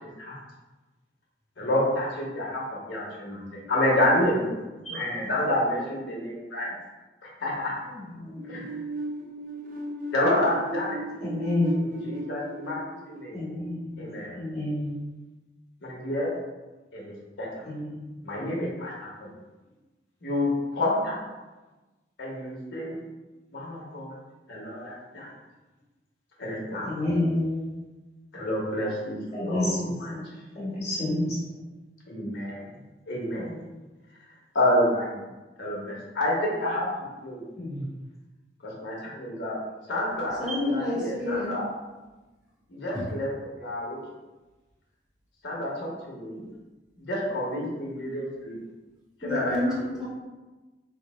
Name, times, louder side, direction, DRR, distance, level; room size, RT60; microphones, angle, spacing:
voice 1, 0.0-0.4 1.6-4.6 4.9-6.7 7.4-7.7 8.5-8.6 10.1-11.0 11.7-13.4 14.0-14.3 15.8-16.3 16.9-17.5 18.2-19.3 20.2-21.2 22.2-23.0 23.5-24.2 24.5-25.3 26.4-26.9 28.3-29.2 29.4-30.1 32.1-32.6 33.1-33.5 34.5-35.2 35.6-36.9 37.2-37.4 38.6-39.6 39.9-40.4 40.6-41.7 42.7-44.0 45.4-46.4 47.0-48.6 49.2-49.6, left 1 dB, 75° left, -4 dB, 1.1 m, -29 dB
sound 1, 8.3-14.0, right 1 dB, 50° right, 0.4 m, -36 dB
voice 2, 11.2-11.9 13.3-14.0 14.3-14.9 17.7-18.0 26.8-27.6 29.3-30.3 30.5-31.4 33.4-33.5 37.6-37.8 40.5-40.6, left 1 dB, 35° left, -8 dB, 1.4 m, -29 dB
voice 3, 40.4-41.5 42.9-43.0 49.2-50.1, left 2 dB, 5° right, -8 dB, 0.9 m, -29 dB
3.5 x 2.0 x 4.3 m, 1.2 s
head